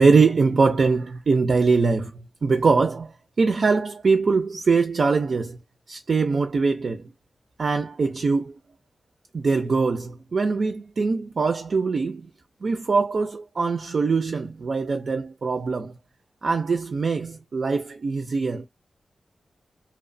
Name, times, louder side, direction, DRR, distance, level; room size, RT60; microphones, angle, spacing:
voice 1, 0.0-5.6 5.9-7.1 7.6-8.5 9.3-12.3 12.6-15.9 16.4-18.7, right 4 dB, 65° right, 0.3 m, -22 dB
2.7 x 2.1 x 2.5 m
wide cardioid pair, 80°, 0 cm